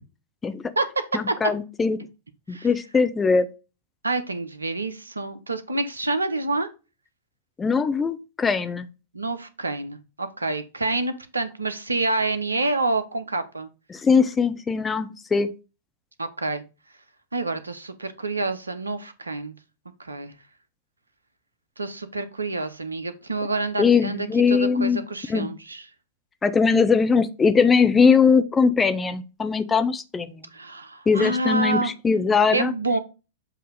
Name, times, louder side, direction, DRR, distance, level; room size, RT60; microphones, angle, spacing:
voice 1, 1.1-2.0 2.5-3.5 7.6-8.9 13.9-15.5 23.8-25.0 25.3-25.5 26.4-30.3 31.1-32.7, left 5 dB, 15° left, 10 dB, 0.5 m, -20 dB
voice 2, 4.0-6.7 9.1-13.7 16.2-16.6 17.3-19.5 20.0-20.3 21.8-25.8 30.5-31.9 32.5-33.0, right 2 dB, 80° right, 12 dB, 0.7 m, -27 dB
7.4 x 2.7 x 5.1 m, 0.31 s
figure-of-eight pair, 100°, 0 cm